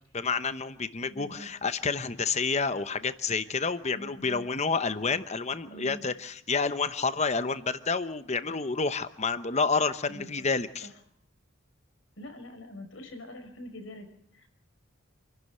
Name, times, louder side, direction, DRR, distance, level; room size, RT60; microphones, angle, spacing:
voice 1, 0.1-10.9, left 4 dB, 35° left, 12 dB, 0.9 m, -29 dB
voice 2, 1.1-1.5 3.9-4.4 5.7-6.0 10.1-10.5 10.8-10.9 12.2-14.5, equal, 75° left, 7 dB, 5.2 m, -45 dB
27.5 x 12.0 x 9.5 m, 0.69 s
head